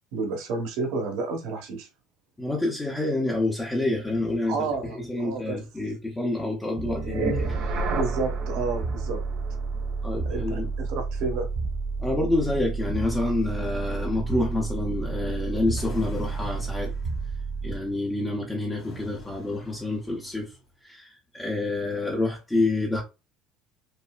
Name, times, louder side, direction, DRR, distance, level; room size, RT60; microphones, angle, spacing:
voice 1, 0.1-1.9 4.5-5.6 7.9-9.2 10.2-11.5, right 3 dB, 75° right, 1.3 m, -30 dB
voice 2, 2.4-4.7 4.9-7.6 10.0-10.7 12.0-16.9 17.6-20.5 20.8-23.0, left 2 dB, 10° left, 0.7 m, -28 dB
sound 1, 6.8-17.9, right 4 dB, 55° right, 1.3 m, -30 dB
sound 2, 15.8-17.6 18.8-20.6, left 2 dB, 40° left, 1.6 m, -45 dB
5.3 x 2.0 x 2.4 m
cardioid pair, 145°, 0 cm